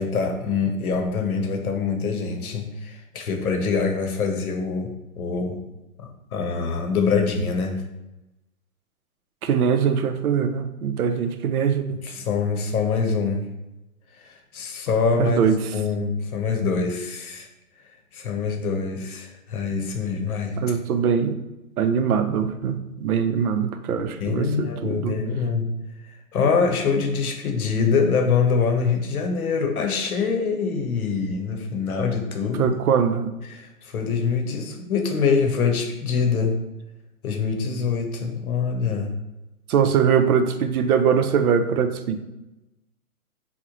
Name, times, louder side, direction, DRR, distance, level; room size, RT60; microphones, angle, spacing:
voice 1, 0.0-5.6 6.0-7.8 12.0-13.5 14.2-17.5 18.1-20.6 24.2-25.7 26.3-32.7 33.5-36.6 37.2-39.1, left 5 dB, 75° left, 3 dB, 0.8 m, -24 dB
voice 2, 9.4-12.0 15.2-15.6 20.6-21.4 21.8-25.2 32.5-33.3 39.7-42.2, right 7 dB, 80° right, 8 dB, 0.5 m, -22 dB
3.0 x 2.1 x 3.6 m, 0.98 s
hypercardioid pair, 150°, 43 cm